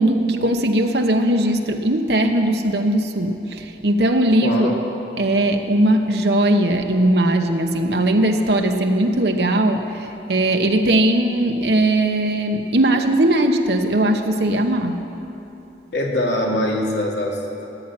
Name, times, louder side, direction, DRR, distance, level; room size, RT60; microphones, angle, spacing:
voice 1, 0.0-4.7 5.2-15.0, right 1 dB, 65° right, 4 dB, 1.0 m, -19 dB
voice 2, 4.4-4.8 15.9-17.6, left 1 dB, 85° left, -1 dB, 2.5 m, -23 dB
16.0 x 9.1 x 9.0 m, 2.9 s
head